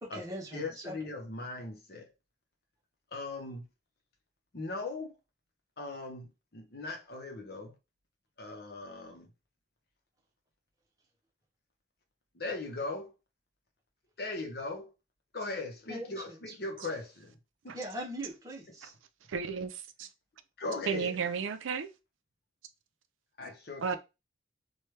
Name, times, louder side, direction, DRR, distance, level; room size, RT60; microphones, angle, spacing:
voice 1, 0.0-0.9 15.9-16.4 17.7-18.9, right 1 dB, 20° right, 0.8 m, -40 dB
voice 2, 0.5-2.1 3.1-3.7 4.5-5.2 5.8-7.7 8.4-9.3 12.3-13.1 14.2-14.9 15.3-17.4 17.6-17.8 20.6-21.2 23.4-24.0, left 3 dB, 55° left, 0.8 m, -39 dB
voice 3, 19.3-20.1 20.9-21.9 23.8-24.0, right 6 dB, 90° right, 0.4 m, -33 dB
3.1 x 2.2 x 3.1 m
head